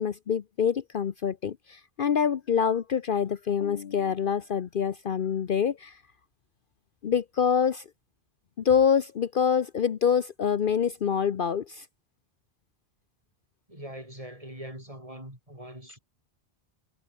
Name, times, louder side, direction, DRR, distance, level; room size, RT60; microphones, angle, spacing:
voice 1, 0.0-6.0 7.0-7.8 8.6-11.9, left 7 dB, 55° left, 0.9 m, -26 dB
voice 2, 13.7-16.0, right 1 dB, 30° right, 8.0 m, -42 dB
omnidirectional pair, 1.1 m